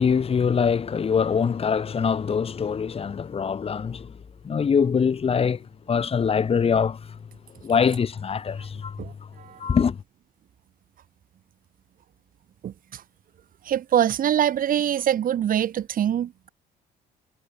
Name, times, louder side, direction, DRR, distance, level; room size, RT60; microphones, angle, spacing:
voice 1, 0.0-4.1 4.5-5.6 5.9-7.0 7.6-8.9 9.6-10.0, left 6 dB, 35° left, 3.5 m, -23 dB
voice 2, 9.0-9.6 12.6-13.0 13.6-16.5, right 10 dB, 55° right, 6.5 m, -24 dB
cardioid pair, 110°, 17 cm